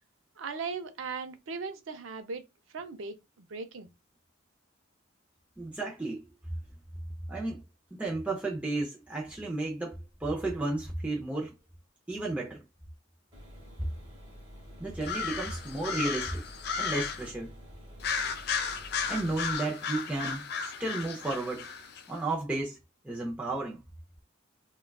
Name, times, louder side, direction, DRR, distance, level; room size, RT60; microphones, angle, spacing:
voice 1, 0.4-2.4 2.7-3.9, right 4 dB, 70° right, 0.5 m, -38 dB
voice 2, 5.6-6.3 7.3-7.6 7.9-11.5 12.1-12.6 14.8-16.4 16.8-17.5 19.1-21.7 22.1-22.8 23.0-23.8, right 2 dB, 5° right, 0.5 m, -33 dB
sound 1, 13.3-19.6, equal, 25° right, 1.1 m, -49 dB
sound 2, 15.0-17.3 18.0-22.0, left 6 dB, 50° left, 0.4 m, -34 dB
3.5 x 2.2 x 2.2 m
head